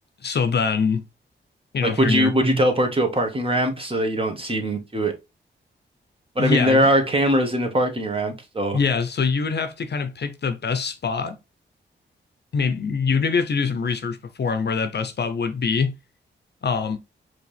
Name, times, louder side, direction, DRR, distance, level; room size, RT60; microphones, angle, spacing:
voice 1, 0.2-1.0 1.7-2.3 6.4-6.9 8.7-11.4 12.5-15.9 16.6-17.0, left 5 dB, 60° left, 0.7 m, -24 dB
voice 2, 1.8-5.1 6.3-8.8, right 1 dB, 30° right, 1.6 m, -21 dB
4.9 x 3.1 x 3.3 m
cardioid pair, 65°, 20 cm